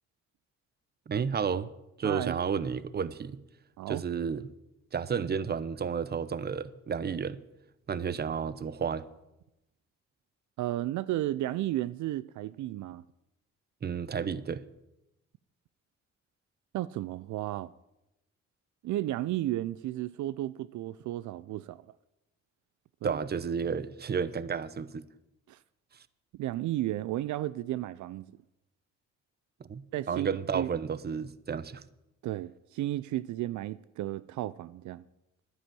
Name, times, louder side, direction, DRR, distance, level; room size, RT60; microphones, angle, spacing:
voice 1, 1.1-1.7 2.0-3.4 3.9-4.5 4.9-7.4 7.9-9.1 13.8-14.6 23.0-25.0 29.6-31.8, right 6 dB, 35° right, 0.8 m, -32 dB
voice 2, 2.0-2.4 3.8-4.0 10.6-13.0 16.7-17.7 18.8-21.9 23.0-23.2 25.5-25.6 26.3-28.3 29.9-30.7 32.2-35.0, right 14 dB, 75° right, 0.5 m, -33 dB
11.5 x 9.9 x 7.6 m
cardioid pair, 90°, 30 cm